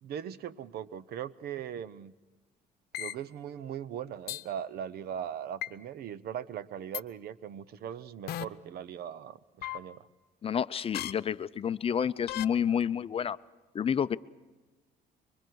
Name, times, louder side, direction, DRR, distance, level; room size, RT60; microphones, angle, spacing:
voice 1, 0.0-2.1 2.9-10.1, right 9 dB, 65° right, 17 dB, 0.9 m, -39 dB
sound 1, 2.9-3.1 4.3-4.4 5.6-5.7 6.9-7.0 8.3-8.4 9.6-9.8 10.9-11.1 12.3-12.4, left 13 dB, 70° left, 0.8 m, -35 dB
voice 2, 10.4-13.4 13.7-14.2, left 8 dB, 35° left, 14 dB, 0.6 m, -29 dB
26.0 x 23.5 x 4.7 m, 1.3 s
cardioid pair, 110°, 17 cm